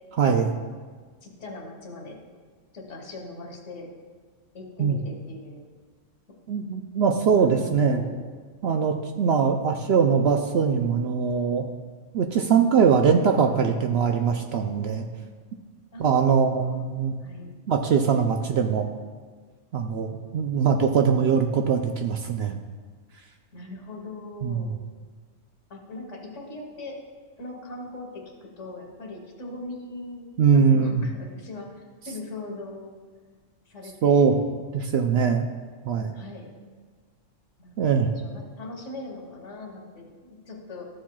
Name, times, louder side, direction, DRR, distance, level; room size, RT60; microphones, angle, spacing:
voice 1, 0.2-0.5 4.8-5.0 6.5-8.0 8.6-11.7 12.1-15.0 16.0-17.1 17.7-18.9 19.7-22.6 24.4-24.7 30.4-31.0 34.0-34.4 34.7-35.5 35.9-36.1 37.8-38.1, right 6 dB, 65° right, 5 dB, 0.7 m, -22 dB
voice 2, 1.2-2.2 2.7-3.9 4.5-5.6 7.4-8.1 15.9-16.9 17.2-17.5 23.5-24.7 25.7-27.0 27.4-31.7 32.0-32.9 33.7-34.3 36.1-36.5 37.6-40.8, left 2 dB, 65° left, 1 dB, 1.6 m, -40 dB
13.0 x 7.2 x 2.3 m, 1.5 s
omnidirectional pair, 1.3 m